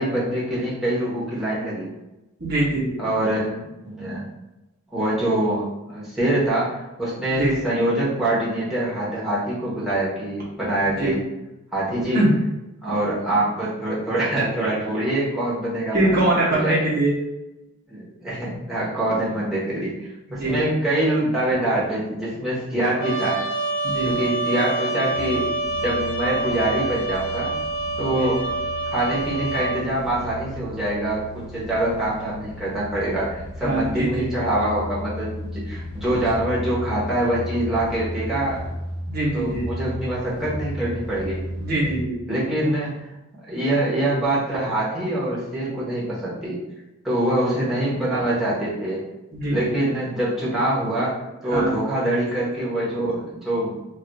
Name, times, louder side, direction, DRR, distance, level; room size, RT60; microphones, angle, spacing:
voice 1, 0.0-1.9 3.0-3.6 3.8-4.2 4.9-11.2 11.7-12.2 12.8-16.9 17.9-23.4 24.0-25.5 25.8-27.5 28.0-28.4 28.9-31.2 31.5-38.6 39.3-41.4 42.3-42.9 43.5-46.6 47.0-49.1 49.5-51.2 51.4-53.8, right 1 dB, ahead, -9 dB, 1.0 m, -24 dB
voice 2, 2.4-3.0 7.3-7.6 11.0-11.1 12.1-12.3 15.9-17.1 20.4-20.6 23.8-24.1 28.1-28.3 33.6-34.3 39.1-39.7 41.6-42.2 49.3-49.8 51.5-51.8, right 1 dB, 45° right, -4 dB, 0.9 m, -23 dB
Trumpet, 23.0-29.9, right 2 dB, 65° left, 0.6 m, -27 dB
sound 1, 25.1-42.1, equal, 80° right, 0.6 m, -35 dB
2.4 x 2.3 x 3.9 m, 0.98 s
head